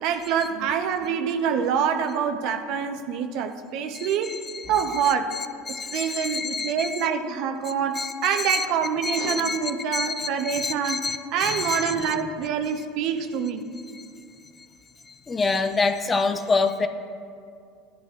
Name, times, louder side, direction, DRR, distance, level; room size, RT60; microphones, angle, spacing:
voice 1, 0.0-4.3 4.7-5.4 5.7-11.0 11.3-13.7, right 7 dB, 60° right, 7 dB, 0.8 m, -26 dB
voice 2, 3.9-7.1 7.9-8.7 9.0-9.6 9.9-12.3 13.9-14.0 15.1-16.9, left 4 dB, 20° left, 8 dB, 0.6 m, -28 dB
15.5 x 11.0 x 2.5 m, 2.4 s
supercardioid pair, 110°, 0 cm